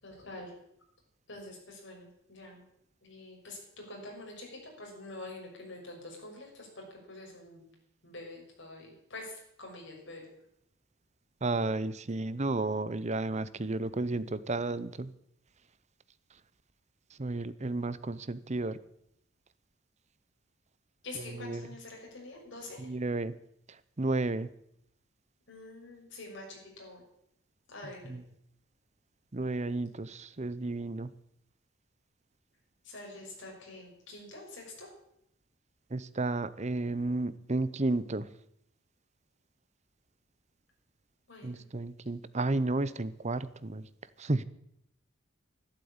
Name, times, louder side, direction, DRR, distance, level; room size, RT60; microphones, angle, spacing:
voice 1, 0.0-0.5 1.3-2.6 3.0-7.7 8.0-10.2 21.0-22.9 25.5-27.0 27.7-28.1 32.8-34.9 41.3-41.6, left 2 dB, 60° left, 0 dB, 6.1 m, -46 dB
voice 2, 11.4-15.1 17.2-18.8 21.1-21.7 22.8-23.3 23.7-24.5 28.0-28.2 29.3-31.1 35.9-38.3 41.4-43.9 44.2-44.4, right 2 dB, 35° right, 16 dB, 0.8 m, -32 dB
12.0 x 12.0 x 8.8 m, 0.74 s
head